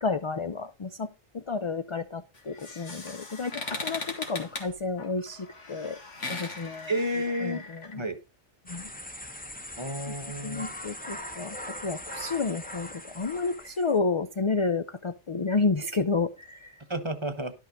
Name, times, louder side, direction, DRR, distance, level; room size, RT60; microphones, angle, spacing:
voice 1, 0.0-6.0 6.3-6.9 7.4-8.0 8.7-8.9 10.0-10.1 10.4-11.6 11.8-16.8, left 4 dB, 45° left, 0.3 m, -31 dB
sound 1, 2.3-7.9, left 3 dB, 80° left, 2.4 m, -39 dB
voice 2, 6.9-7.6 7.9-8.2 9.8-10.7 16.9-17.5, equal, 25° right, 1.0 m, -31 dB
sound 2, 8.7-14.0, left 1 dB, 10° left, 0.7 m, -41 dB
11.5 x 5.5 x 5.1 m
omnidirectional pair, 1.2 m